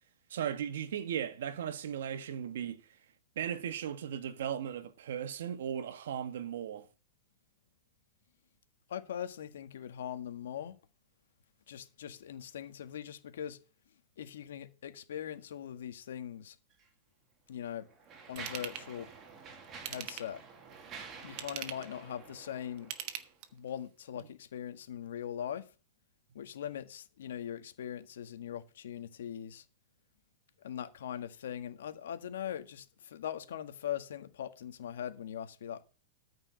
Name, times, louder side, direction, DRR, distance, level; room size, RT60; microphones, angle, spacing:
voice 1, 0.3-2.8 3.3-6.9, right 9 dB, 70° right, 1.5 m, -37 dB
voice 2, 8.9-10.8 11.7-13.6 14.2-16.6 17.5-17.9 18.3-19.1 19.8-20.4 21.2-22.9 23.5-25.7 26.3-29.6 30.6-35.9, left 9 dB, 75° left, 1.7 m, -41 dB
Mechanisms, 16.7-16.9 17.6-23.4, right 5 dB, 20° right, 2.2 m, -50 dB
Ratchet pawl / Tools, 18.4-18.9 19.7-20.4 21.2-21.9 22.8-23.7 24.2-24.3, right 12 dB, 40° right, 1.2 m, -41 dB
13.5 x 5.4 x 6.4 m
supercardioid pair, 165°, 0 cm